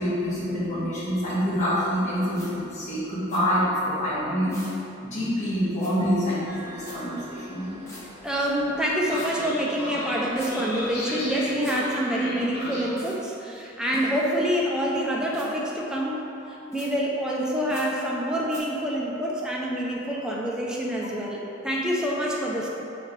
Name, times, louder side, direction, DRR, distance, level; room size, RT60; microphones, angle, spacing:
voice 1, 0.0-4.6 5.0-7.7, equal, 40° left, -10 dB, 1.4 m, -26 dB
sound 1, 2.3-2.5 3.3-3.4 4.5-4.8 5.8-5.9 6.8-7.0 7.9-8.0 9.1-9.3 10.4-10.5 11.6-11.8 13.0-13.2 13.9-14.3 15.3-15.5 16.7-16.9 17.7-17.9 18.5-18.6, left 1 dB, 15° left, 0.9 m, -42 dB
Train, 6.5-12.9, left 1 dB, 55° left, 0.9 m, -36 dB
voice 2, 8.2-16.2 16.7-22.7, equal, 5° right, -4 dB, 0.4 m, -26 dB
3.3 x 3.2 x 4.3 m, 2.8 s
head